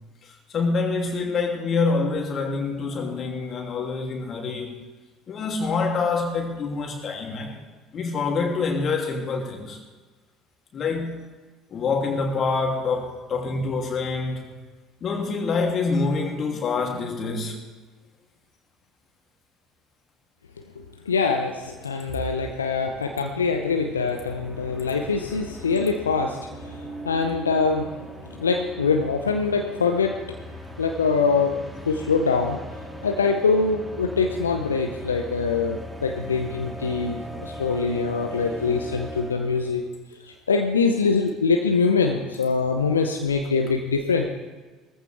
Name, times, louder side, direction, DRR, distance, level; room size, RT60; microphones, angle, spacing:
voice 1, 0.5-4.8 5.3-7.6 7.9-9.8 10.7-11.2 11.7-14.6 15.0-17.6, left 4 dB, 40° left, 2.8 m, -26 dB
voice 2, 21.1-27.9 28.4-30.1 30.8-31.5 31.9-32.6 33.0-39.8 40.2-44.3, left 4 dB, 80° left, 0.8 m, -24 dB
sound 1, 22.9-39.8, equal, ahead, 2.5 m, -39 dB
19.0 x 14.5 x 3.4 m
figure-of-eight pair, 60°, 0 cm